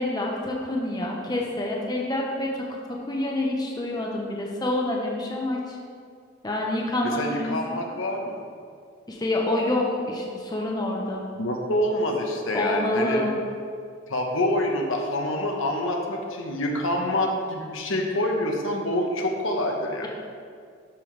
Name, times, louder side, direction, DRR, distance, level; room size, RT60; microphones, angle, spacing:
voice 1, 0.0-2.5 3.1-5.8 6.4-7.8 9.1-11.2 12.5-13.3, left 1 dB, 20° left, -2 dB, 0.9 m, -27 dB
voice 2, 7.0-8.4 11.4-13.2 14.1-20.1, left 1 dB, 80° left, 1 dB, 1.0 m, -26 dB
12.5 x 5.5 x 3.3 m, 2.2 s
head